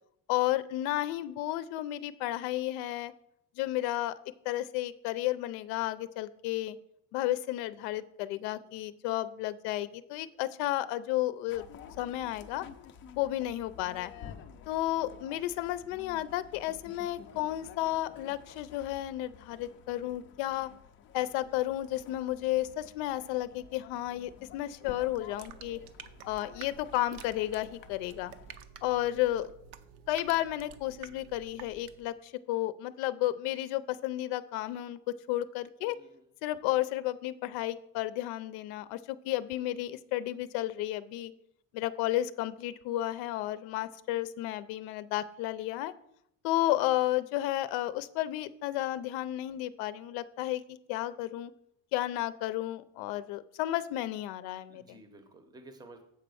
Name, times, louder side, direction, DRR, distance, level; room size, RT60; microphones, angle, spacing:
voice 1, 0.3-3.1 3.6-4.1 4.4-6.8 7.1-11.6 12.0-12.6 13.1-14.1 14.7-20.7 21.1-25.8 26.3-28.3 28.8-29.5 30.1-36.0 36.4-41.3 41.7-45.9 46.4-51.5 51.9-55.0, left 15 dB, 90° left, 14 dB, 0.6 m, -32 dB
sound 1, 11.5-28.6, left 8 dB, 35° left, 0.4 m, -52 dB
sound 2, 24.9-32.2, right 8 dB, 75° right, 0.7 m, -51 dB
voice 2, 35.8-36.3 54.7-56.0, right 2 dB, 10° right, 7 dB, 0.7 m, -53 dB
7.7 x 4.2 x 6.9 m, 0.74 s
cardioid pair, 175°, 38 cm